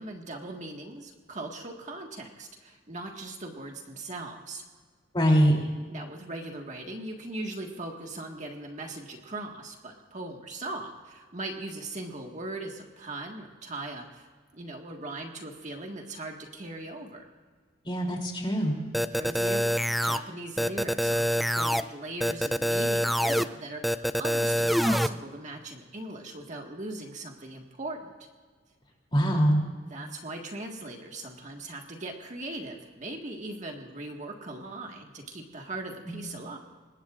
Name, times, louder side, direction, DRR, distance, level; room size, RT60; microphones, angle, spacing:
voice 1, 0.0-4.7 5.9-14.3 14.5-17.3 19.1-28.1 29.8-36.6, right 2 dB, 40° right, 2 dB, 1.7 m, -39 dB
voice 2, 5.1-5.6 17.8-18.8 29.1-29.6 36.0-36.2, equal, 25° left, 0 dB, 3.1 m, -23 dB
sound 1, 18.9-20.2 20.6-21.8 22.2-23.4 23.8-25.1, equal, ahead, 0.3 m, -25 dB
25.0 x 21.0 x 2.5 m, 1.4 s
head